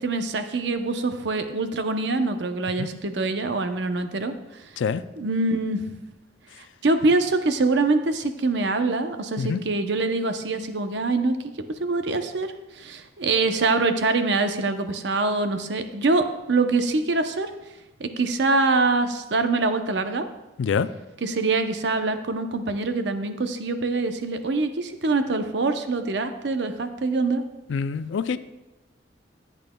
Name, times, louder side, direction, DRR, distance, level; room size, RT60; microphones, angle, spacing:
voice 1, 0.0-4.3 4.6-4.7 5.2-5.9 6.8-11.4 11.8-17.5 18.0-20.3 21.2-27.4, right 3 dB, 65° right, 8 dB, 0.7 m, -24 dB
voice 2, 27.7-28.4, left 6 dB, 85° left, 14 dB, 0.4 m, -25 dB
14.5 x 8.3 x 2.2 m, 1.0 s
head